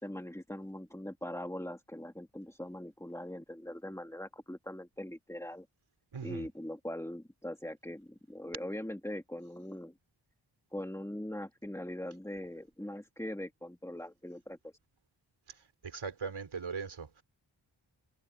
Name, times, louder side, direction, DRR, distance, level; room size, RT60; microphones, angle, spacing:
voice 1, 0.0-5.7 6.2-9.9 10.7-14.7, left 1 dB, 5° left, 2.3 m, -41 dB
voice 2, 6.1-6.5 15.8-17.2, right 5 dB, 85° right, 5.0 m, -39 dB
cardioid pair, 45°, 47 cm